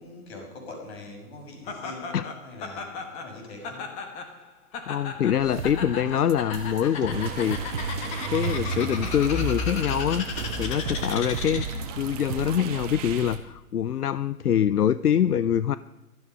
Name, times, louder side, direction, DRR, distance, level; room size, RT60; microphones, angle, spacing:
voice 1, 0.0-3.9 10.7-11.2, left 2 dB, 45° left, 1 dB, 6.0 m, -43 dB
Laughter, 1.7-11.9, left 5 dB, 15° left, 1.2 m, -36 dB
voice 2, 4.9-7.9 8.3-10.3 10.6-11.7 11.9-15.8, left 9 dB, 80° left, 16 dB, 0.7 m, -24 dB
sound 1, 5.4-12.9, right 4 dB, 65° right, 1.4 m, -37 dB
sound 2, 7.1-13.4, right 4 dB, 25° right, 1.4 m, -34 dB
16.5 x 13.0 x 5.5 m, 0.94 s
figure-of-eight pair, 140°, 45 cm